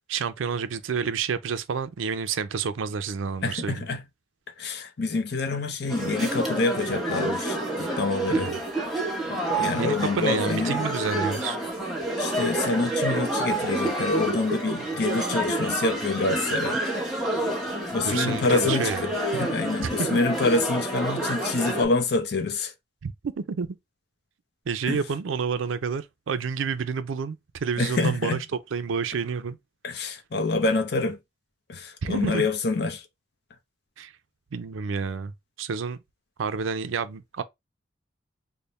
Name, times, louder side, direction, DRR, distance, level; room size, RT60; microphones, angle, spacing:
voice 1, 0.1-3.9 8.3-8.6 9.7-11.6 18.0-19.0 20.0-20.2 23.0-23.8 24.7-28.5 28.7-29.6 32.0-32.5 34.0-34.1 34.5-35.3 35.6-36.0 36.4-37.4, right 5 dB, 85° right, 0.4 m, -29 dB
voice 2, 3.4-4.1 4.6-8.5 9.3-10.8 12.2-16.8 17.9-22.7 24.9-25.0 27.8-28.4 29.8-31.2 31.7-33.0, left 3 dB, 55° left, 0.6 m, -27 dB
sound 1, 5.9-21.8, right 1 dB, ahead, 0.9 m, -28 dB
3.3 x 2.1 x 3.9 m
head